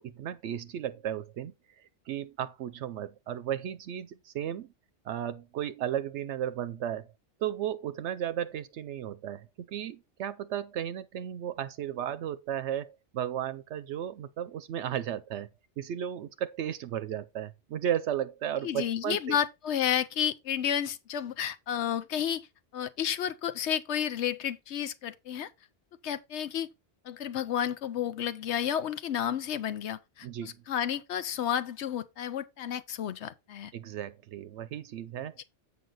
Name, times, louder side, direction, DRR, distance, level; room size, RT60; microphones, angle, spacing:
voice 1, 0.0-4.7 5.0-7.1 7.4-15.5 15.8-19.4 30.2-30.6 33.7-35.4, right 10 dB, 80° right, 0.9 m, -34 dB
voice 2, 18.6-22.5 22.7-25.5 26.0-26.7 27.0-33.7 35.4-35.5, left 9 dB, 75° left, 0.9 m, -31 dB
7.8 x 5.6 x 3.9 m
omnidirectional pair, 1.2 m